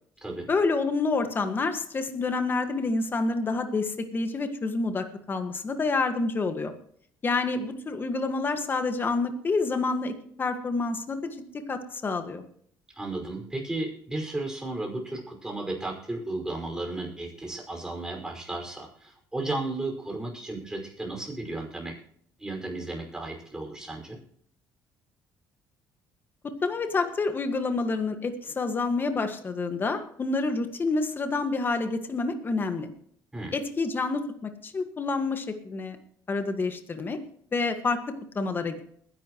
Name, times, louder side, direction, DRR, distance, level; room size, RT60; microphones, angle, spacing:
voice 1, 0.5-6.7 7.2-10.1 10.4-11.4 11.7-12.5 26.6-32.9 33.5-36.0 36.3-37.2 37.5-38.0 38.4-38.8, left 3 dB, 30° left, 7 dB, 1.7 m, -28 dB
voice 2, 12.9-21.9 22.4-24.2 33.3-33.5, right 2 dB, 10° right, 0 dB, 5.4 m, -34 dB
21.5 x 11.0 x 3.1 m, 0.62 s
cardioid pair, 120°, 7 cm